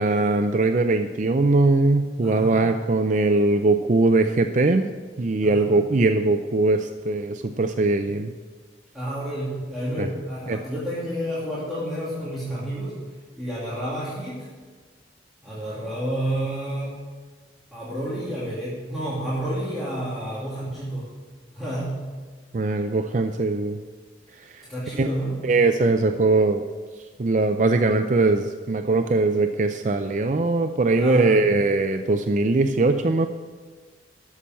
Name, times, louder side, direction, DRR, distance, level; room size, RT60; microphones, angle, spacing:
voice 1, 0.0-4.9 5.2-8.3 10.0-10.1 10.5-10.6 22.5-23.8 24.4-24.6 25.0-25.1 25.4-26.6 27.2-33.3, right 3 dB, 45° right, 7 dB, 0.5 m, -21 dB
voice 2, 2.2-2.5 5.5-5.7 8.9-12.9 13.4-14.5 15.4-17.0 17.7-21.1 21.5-22.0 24.7-25.4 31.0-31.4, right 1 dB, ahead, -10 dB, 2.8 m, -30 dB
13.0 x 7.0 x 7.5 m, 1.4 s
head